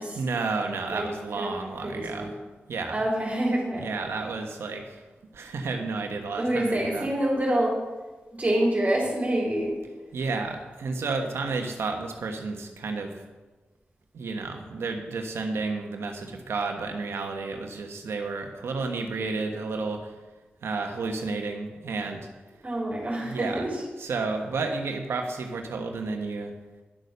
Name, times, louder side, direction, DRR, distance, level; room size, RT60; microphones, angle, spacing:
voice 1, 0.1-2.3 2.7-3.0 3.8-5.0 5.3-7.1 10.1-13.2 14.1-20.1 20.6-22.3 23.2-23.7 24.0-26.5, right 3 dB, 85° right, 3 dB, 1.2 m, -31 dB
voice 2, 1.8-2.3 2.9-3.9 6.4-7.8 8.3-9.7 22.6-23.8, right 1 dB, 30° right, -5 dB, 3.3 m, -26 dB
10.0 x 6.7 x 6.6 m, 1.2 s
cardioid pair, 65°, 4 cm